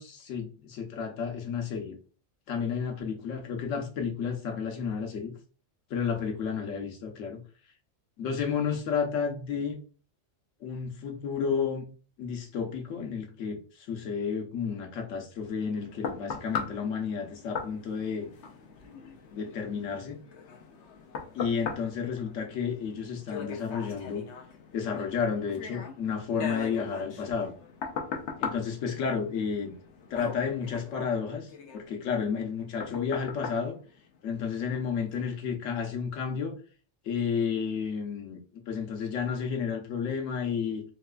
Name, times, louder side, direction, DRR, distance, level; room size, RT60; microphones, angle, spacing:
voice 1, 0.0-2.0 2.5-5.3 5.9-7.4 8.2-9.8 10.6-11.8 12.2-18.3 19.3-20.2 21.3-24.2 24.7-27.5 28.4-29.7 30.1-33.8 34.2-36.5 37.0-40.8, left 6 dB, 90° left, 3 dB, 1.1 m, -31 dB
sound 1, 15.4-34.6 35.1-35.3, left 6 dB, 70° left, 0.9 m, -40 dB
3.9 x 2.4 x 2.2 m, 0.39 s
omnidirectional pair, 1.3 m